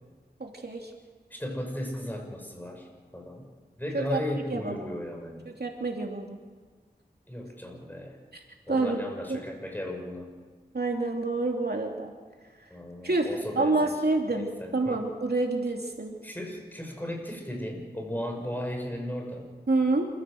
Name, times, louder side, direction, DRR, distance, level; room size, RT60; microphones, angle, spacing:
voice 1, 0.4-0.9 3.9-4.2 4.5-4.8 5.6-6.4 8.3-8.4 8.7-9.0 9.3-9.4 10.7-12.1 13.0-13.3 13.6-16.1 19.7-20.1, right 3 dB, 65° right, 2 dB, 2.8 m, -27 dB
voice 2, 1.3-2.9 3.1-3.4 3.8-5.5 7.3-8.2 8.7-10.3 12.7-14.0 14.3-15.0 16.2-19.5, left 1 dB, 10° left, 2 dB, 6.4 m, -35 dB
28.0 x 15.5 x 7.8 m, 1.4 s
wide cardioid pair, 45°, 17 cm